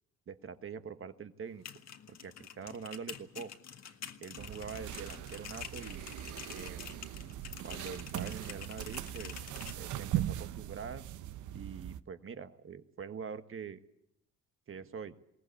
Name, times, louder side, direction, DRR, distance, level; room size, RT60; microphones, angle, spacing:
voice 1, 0.3-1.6 2.1-3.5 4.2-6.1 6.5-6.8 7.6-9.4 9.8-11.0 11.5-13.8 14.7-15.1, right 6 dB, 45° right, 10 dB, 1.4 m, -44 dB
sound 1, 1.5-9.8, left 8 dB, 60° left, 1.8 m, -48 dB
sound 2, 4.4-12.0, right 12 dB, 75° right, 0.8 m, -40 dB
21.5 x 18.0 x 8.4 m, 0.83 s
cardioid pair, 90°, 30 cm